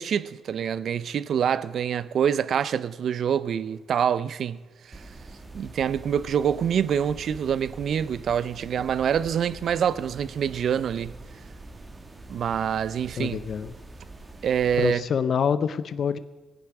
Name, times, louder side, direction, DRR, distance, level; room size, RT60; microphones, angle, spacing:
voice 1, 0.0-4.6 4.9-5.0 5.5-11.1 12.3-13.4 14.4-15.0, right 8 dB, 60° right, 0.5 m, -26 dB
sound 1, 4.9-14.9, right 2 dB, 25° right, 1.5 m, -44 dB
voice 2, 13.2-13.7 14.8-16.2, left 7 dB, 55° left, 0.6 m, -26 dB
16.0 x 10.0 x 6.0 m
cardioid pair, 90°, 0 cm